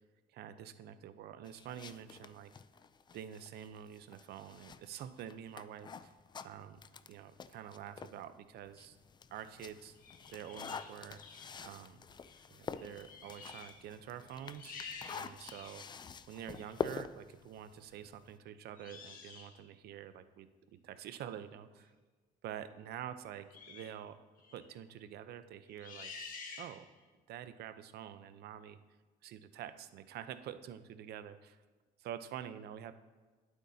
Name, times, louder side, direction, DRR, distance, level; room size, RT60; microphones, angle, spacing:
voice 1, 0.3-2.5 3.1-6.1 6.4-9.0 9.3-9.9 10.3-11.2 11.6-12.0 12.5-14.8 15.1-21.9 22.4-24.2 24.5-26.1 26.6-26.8 27.3-28.8 29.2-31.6 32.0-32.9, right 10 dB, 70° right, 11 dB, 0.7 m, -47 dB
sound 1, 1.5-8.2 8.7-18.4, left 6 dB, 25° left, 0.4 m, -47 dB
sound 2, 9.9-11.6 12.2-12.5 12.7-13.8 14.2-15.9 16.5-16.7 18.8-19.6 23.5-24.0 24.4-24.7 25.7-27.0, left 5 dB, 55° left, 1.7 m, -50 dB
20.5 x 8.2 x 2.8 m, 1.4 s
cardioid pair, 110°, 17 cm